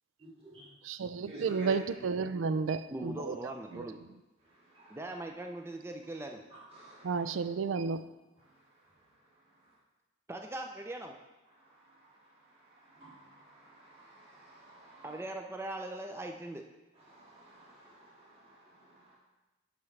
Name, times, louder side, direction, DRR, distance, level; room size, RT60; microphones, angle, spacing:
voice 1, 0.2-0.7 1.3-1.9 4.4-5.1 6.5-7.4 8.4-9.8 11.5-15.2 16.9-19.2, right 3 dB, 30° right, -6 dB, 2.1 m, -52 dB
voice 2, 0.9-3.4 3.7-3.9 7.0-8.0, right 5 dB, 80° right, 12 dB, 0.4 m, -32 dB
voice 3, 2.9-4.0 4.9-6.4 10.3-11.1 15.0-16.6, right 1 dB, 15° right, 3 dB, 0.4 m, -40 dB
10.5 x 6.0 x 3.2 m, 1.1 s
head